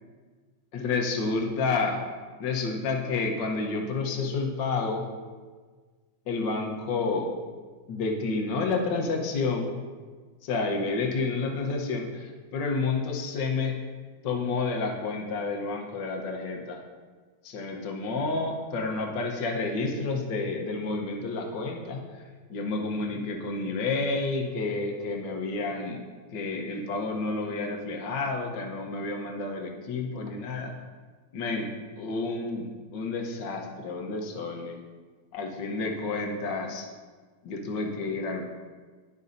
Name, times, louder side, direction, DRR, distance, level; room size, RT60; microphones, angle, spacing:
voice 1, 0.7-2.0 2.4-5.0 6.3-7.3 7.9-9.7 10.4-13.8 14.2-16.8 17.4-26.0 26.3-30.9 31.3-34.8 35.3-36.9 37.4-38.4, left 3 dB, 60° left, 1 dB, 1.7 m, -30 dB
19.0 x 6.4 x 2.7 m, 1.5 s
omnidirectional pair, 2.3 m